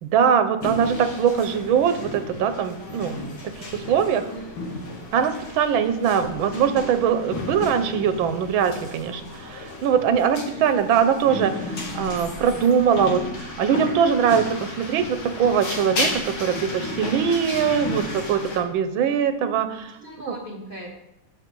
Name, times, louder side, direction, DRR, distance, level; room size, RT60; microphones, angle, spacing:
voice 1, 0.0-4.3 5.1-20.0 20.3-20.4, right 7 dB, 85° right, 10 dB, 1.6 m, -22 dB
sound 1, 0.6-18.6, left 2 dB, 90° left, 2.8 m, -34 dB
voice 2, 4.2-4.5 10.5-10.8 20.0-20.9, right 1 dB, 25° left, -2 dB, 2.1 m, -38 dB
14.5 x 5.3 x 4.6 m, 0.88 s
omnidirectional pair, 2.1 m